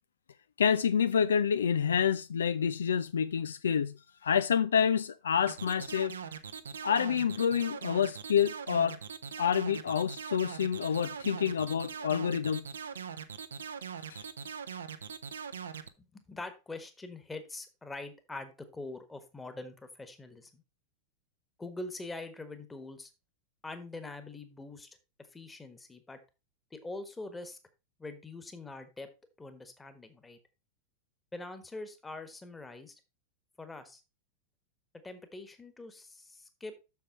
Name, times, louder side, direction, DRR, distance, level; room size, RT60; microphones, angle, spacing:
voice 1, 0.6-3.9 4.2-6.2 6.8-9.0 9.4-12.6 14.1-14.3, left 7 dB, 65° left, 0.3 m, -28 dB
sound 1, 5.5-15.9, right 7 dB, 70° right, 0.7 m, -41 dB
voice 2, 16.0-20.6 21.6-23.1 23.6-26.2 26.7-27.6 28.0-29.1 29.4-30.4 31.3-33.0 33.6-34.0 35.0-36.8, left 2 dB, 10° left, 1.4 m, -44 dB
7.1 x 6.6 x 4.5 m
figure-of-eight pair, 90°, 0 cm